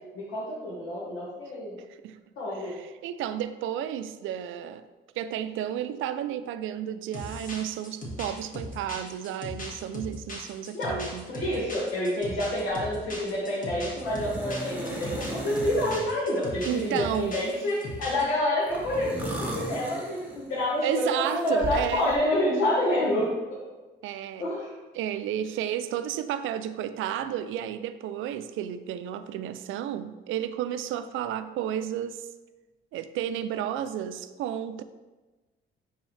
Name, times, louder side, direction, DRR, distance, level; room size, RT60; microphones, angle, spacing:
voice 1, 0.1-1.7 2.4-2.7 10.7-11.0 11.3-23.3 24.4-24.7, left 1 dB, 85° left, -6 dB, 1.5 m, -28 dB
voice 2, 2.5-4.8 5.2-11.3 16.6-17.4 20.8-22.1 24.0-24.4 24.9-32.3 32.9-34.8, right 10 dB, 85° right, 11 dB, 0.4 m, -32 dB
sound 1, 7.1-18.3, left 1 dB, 45° left, 1.7 m, -38 dB
sound 2, 12.2-12.4 12.7-13.1 14.0-16.1 16.6-18.0 18.6-20.7 21.2-22.2, right 1 dB, 10° right, 1.4 m, -37 dB
9.5 x 3.5 x 3.3 m, 1.2 s
cardioid pair, 90°, 20 cm